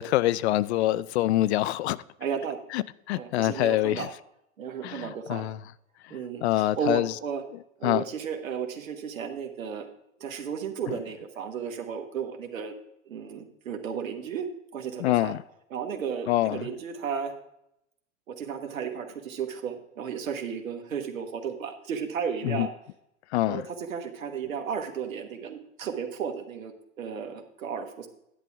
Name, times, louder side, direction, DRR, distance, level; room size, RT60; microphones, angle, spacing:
voice 1, 0.0-2.0 2.7-4.1 4.8-5.6 6.4-7.1 7.8-8.0 15.0-15.4 16.3-16.7 22.4-22.7 23.3-23.6, left 15 dB, 55° left, 0.5 m, -25 dB
voice 2, 2.2-2.6 3.2-4.1 4.6-5.5 6.1-7.4 7.8-9.8 10.2-12.7 13.0-15.3 15.7-17.3 18.3-22.7 23.5-28.1, right 7 dB, 85° right, 1.4 m, -34 dB
11.0 x 8.5 x 3.5 m
hypercardioid pair, 120°, 40 cm